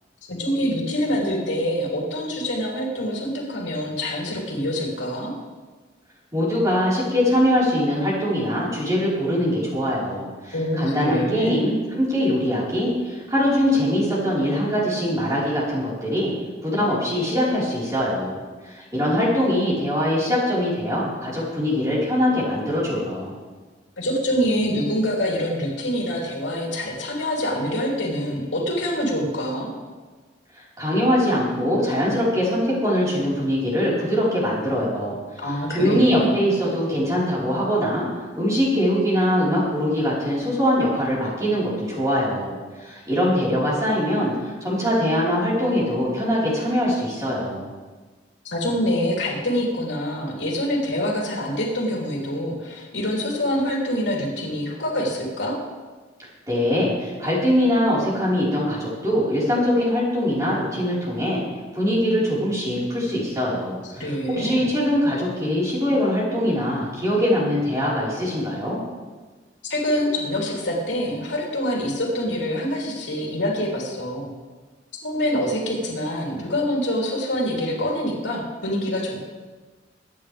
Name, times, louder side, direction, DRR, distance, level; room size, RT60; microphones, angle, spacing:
voice 1, 0.3-5.3 10.5-11.7 24.0-29.7 35.4-36.4 48.4-55.6 64.0-64.7 69.7-74.3 75.0-79.2, equal, 75° left, -3 dB, 3.4 m, -25 dB
voice 2, 6.3-16.3 16.6-18.4 18.6-23.3 30.5-38.1 38.4-47.7 56.2-61.4 61.7-68.8, equal, 20° right, -7 dB, 4.7 m, -22 dB
23.5 x 9.3 x 3.5 m, 1.3 s
head